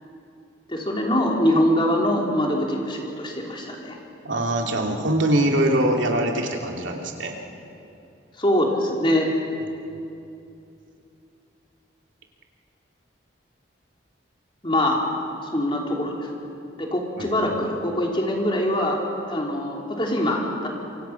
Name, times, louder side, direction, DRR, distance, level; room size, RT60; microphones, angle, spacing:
voice 1, 0.7-4.0 8.4-9.3 14.6-15.0 15.5-16.3 16.8-19.0 19.3-20.7, left 1 dB, 25° left, -1 dB, 3.2 m, -23 dB
voice 2, 4.2-7.3 17.2-17.4, right 1 dB, 80° right, 1 dB, 2.8 m, -23 dB
27.0 x 24.5 x 5.9 m, 2.7 s
head